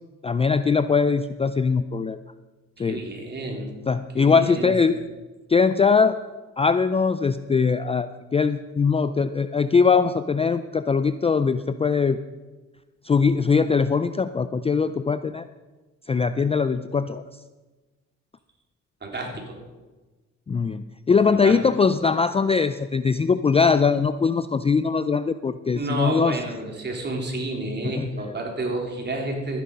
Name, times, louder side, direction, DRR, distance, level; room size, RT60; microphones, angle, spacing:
voice 1, 0.2-2.2 2.8-3.0 3.9-5.0 5.5-6.2 6.6-12.2 13.0-15.4 16.1-17.2 20.5-26.4 27.8-28.1, left 5 dB, 20° left, 12 dB, 0.4 m, -21 dB
voice 2, 2.8-3.7 4.1-4.7 19.0-19.6 21.3-21.6 25.7-29.6, right 2 dB, 35° right, 1 dB, 3.5 m, -30 dB
13.5 x 10.5 x 5.4 m, 1.2 s
cardioid pair, 90°, 30 cm